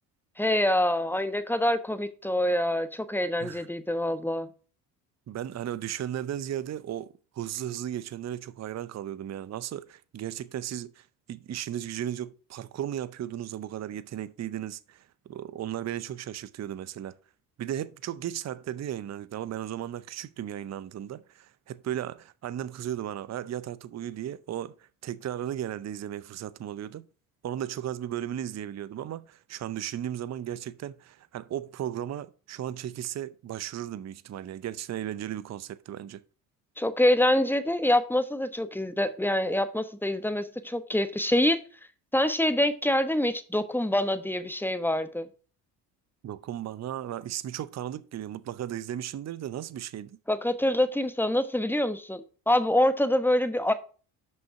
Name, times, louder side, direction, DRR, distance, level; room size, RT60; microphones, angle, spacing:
voice 1, 0.4-4.5 36.8-41.6 42.1-45.3 50.3-53.7, left 1 dB, 5° left, 1.1 m, -25 dB
voice 2, 5.3-17.2 17.6-27.0 27.4-36.2 46.2-50.2, right 11 dB, 35° right, 0.6 m, -35 dB
6.3 x 5.4 x 5.6 m
hypercardioid pair, 55°, 48 cm